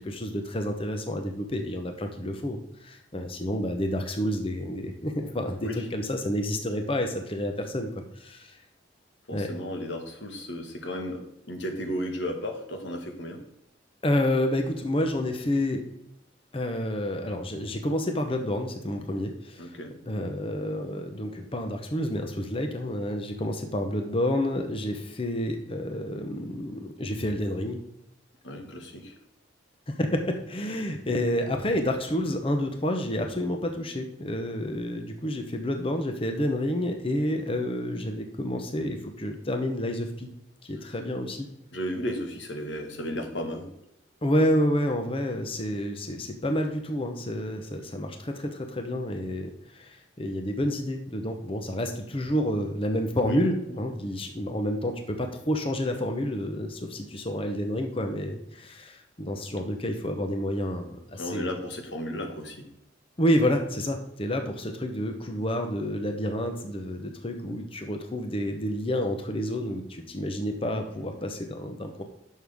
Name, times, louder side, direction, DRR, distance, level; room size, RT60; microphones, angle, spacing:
voice 1, 0.0-8.6 9.3-9.5 14.0-15.8 16.5-19.7 20.1-27.8 29.9-40.3 40.6-41.5 44.2-61.5 63.2-72.0, left 1 dB, 30° left, 5 dB, 0.9 m, -29 dB
voice 2, 9.3-13.4 19.6-19.9 28.4-29.1 41.7-43.6 53.3-53.4 53.7-53.8 61.1-62.7, equal, 85° left, 4 dB, 1.6 m, -34 dB
11.0 x 6.5 x 3.6 m, 0.83 s
head